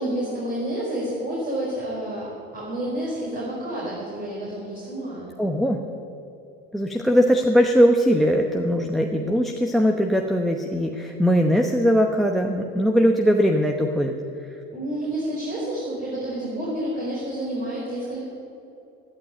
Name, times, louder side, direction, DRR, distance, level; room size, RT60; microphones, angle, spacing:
voice 1, 0.0-5.3 14.7-18.2, right 1 dB, 30° right, -5 dB, 4.7 m, -29 dB
voice 2, 5.4-5.8 6.7-14.2, equal, ahead, 4 dB, 1.0 m, -20 dB
12.0 x 11.0 x 9.0 m, 2.7 s
hypercardioid pair, 90°, 31 cm